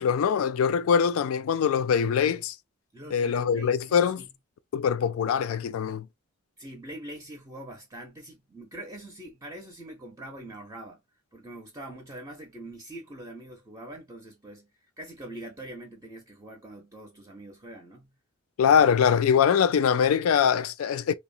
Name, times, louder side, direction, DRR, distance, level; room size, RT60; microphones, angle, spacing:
voice 1, 0.0-2.6 3.1-4.2 4.7-6.1 18.6-21.1, left 7 dB, 80° left, 0.3 m, -23 dB
voice 2, 2.9-4.3 6.6-11.0 11.3-14.7 15.0-18.1, right 1 dB, 15° right, 0.5 m, -43 dB
2.8 x 2.0 x 2.6 m
head